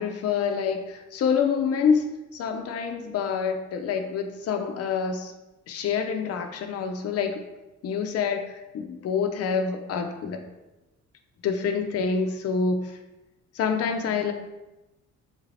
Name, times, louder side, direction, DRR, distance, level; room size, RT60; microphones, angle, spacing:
voice 1, 0.0-5.3 5.7-7.4 7.8-10.4 11.4-13.0 13.5-14.3, left 6 dB, 55° left, 5 dB, 0.6 m, -27 dB
6.4 x 2.5 x 3.2 m, 1.0 s
cardioid pair, 90°, 30 cm